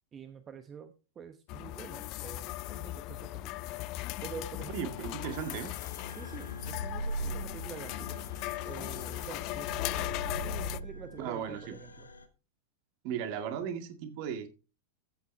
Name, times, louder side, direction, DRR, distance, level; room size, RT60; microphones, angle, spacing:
voice 1, 0.1-3.7 4.2-4.9 6.1-8.0 8.6-10.1 10.7-12.1, right 7 dB, 25° right, 0.9 m, -47 dB
sound 1, 1.5-10.8, left 17 dB, 40° left, 0.4 m, -38 dB
voice 2, 4.7-5.7 11.2-11.8 13.0-14.5, right 8 dB, 45° right, 2.0 m, -36 dB
sound 2, 4.8-12.3, right 1 dB, 75° left, 1.3 m, -42 dB
14.0 x 8.4 x 3.3 m
figure-of-eight pair, 90°, 0 cm